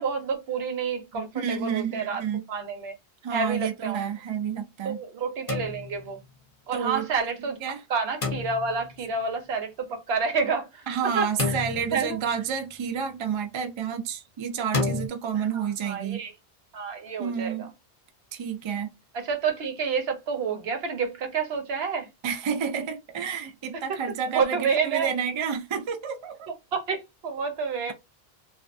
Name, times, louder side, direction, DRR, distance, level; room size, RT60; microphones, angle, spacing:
voice 1, 0.0-2.2 2.5-2.9 3.3-4.1 4.8-6.2 6.7-7.6 7.9-10.9 11.1-11.6 11.9-12.2 15.5-16.3 16.7-17.5 19.1-22.1 23.9-24.0 24.3-25.1 26.5-27.9, right 5 dB, 80° right, 0.9 m, -29 dB
voice 2, 1.1-2.4 3.2-5.0 6.7-7.1 7.6-7.8 10.9-16.2 17.2-17.7 18.3-18.9 22.2-26.5, right 7 dB, 50° right, 0.3 m, -30 dB
sound 1, 5.5-6.2 8.2-8.9 11.4-12.3 14.7-15.1, left 3 dB, 40° left, 0.6 m, -30 dB
2.4 x 2.2 x 2.5 m
omnidirectional pair, 1.0 m